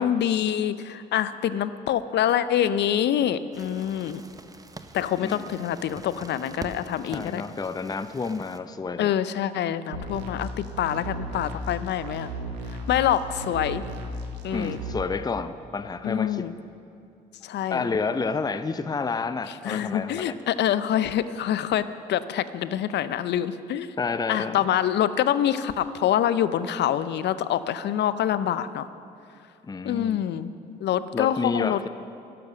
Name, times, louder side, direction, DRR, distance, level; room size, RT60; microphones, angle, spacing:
voice 1, 0.0-4.2 4.9-7.4 9.0-10.5 10.8-12.3 12.9-13.8 14.4-14.8 16.0-16.5 17.4-17.9 19.6-21.8 22.1-23.9 24.3-28.9 29.8-31.9, left 10 dB, 55° left, 14 dB, 0.6 m, -26 dB
sound 1, 3.5-8.6, right 2 dB, 15° right, 0.9 m, -44 dB
voice 2, 7.1-9.1 14.5-16.5 17.7-20.4 24.0-24.6 29.7-30.2 31.1-31.9, left 4 dB, 20° left, 12 dB, 0.6 m, -30 dB
sound 2, 9.9-14.9, right 1 dB, 85° right, 1.2 m, -35 dB
12.0 x 12.0 x 6.4 m, 2.6 s
hypercardioid pair, 50°, 21 cm